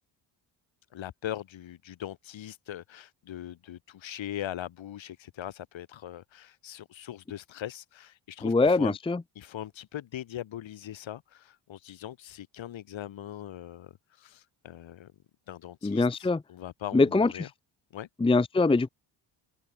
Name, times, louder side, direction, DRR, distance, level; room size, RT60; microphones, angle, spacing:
voice 1, 0.9-9.0 9.3-15.1 15.5-17.5 17.9-18.1, left 12 dB, 70° left, 5.1 m, -40 dB
voice 2, 8.4-9.2 15.8-16.4 16.9-17.5 18.2-18.9, left 3 dB, 10° left, 0.8 m, -23 dB
open air
supercardioid pair, 70°, 48 cm